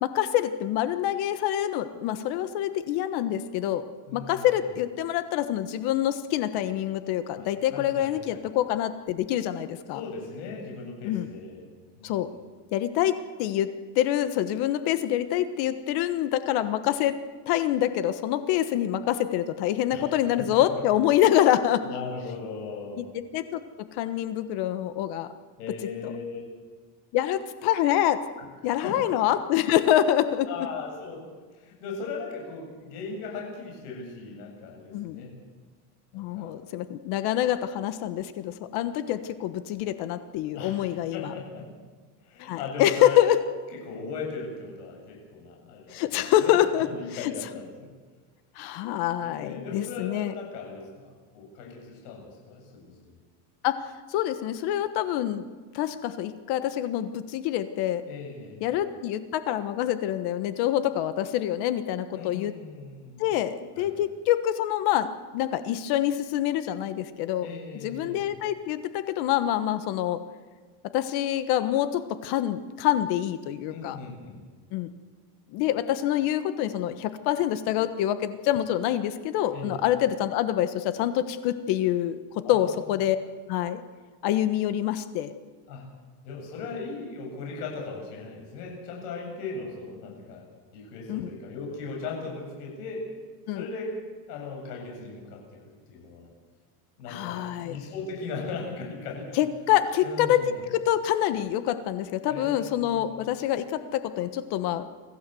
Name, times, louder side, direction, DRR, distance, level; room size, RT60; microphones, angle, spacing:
voice 1, 0.0-3.9 4.1-10.0 11.0-11.3 12.0-12.3 12.7-13.7 13.9-17.2 17.5-21.9 23.0-25.3 26.0-26.1 27.1-28.2 28.6-30.5 34.9-35.2 36.1-41.3 42.4-43.4 45.9-46.9 47.2-47.3 48.6-50.3 53.6-53.8 54.1-55.5 55.7-58.0 58.6-62.5 63.2-67.5 67.8-70.2 70.9-74.0 74.7-74.9 75.5-83.2 83.5-83.8 84.2-85.3 91.1-91.3 93.5-93.6 97.1-97.8 99.3-104.9, left 12 dB, 55° left, 11 dB, 1.3 m, -26 dB
voice 2, 4.1-4.5 7.4-8.5 9.9-11.6 12.0-12.1 19.9-20.1 20.4-20.5 21.8-23.0 25.6-26.4 28.8-29.0 30.5-31.3 31.5-35.3 36.1-36.5 40.5-41.7 42.2-43.2 43.8-46.5 46.9-47.9 49.2-53.1 58.1-58.7 62.1-63.2 63.8-64.0 67.4-68.3 73.7-74.4 79.5-79.7 82.4-82.9 85.7-85.8 86.2-90.4 90.7-93.1 93.5-94.0 94.3-95.6 95.9-96.3 97.0-99.4 100.0-100.7 102.3-103.1, left 4 dB, 75° left, 0 dB, 8.0 m, -38 dB
25.5 x 15.5 x 7.8 m, 1.4 s
supercardioid pair, 145°, 47 cm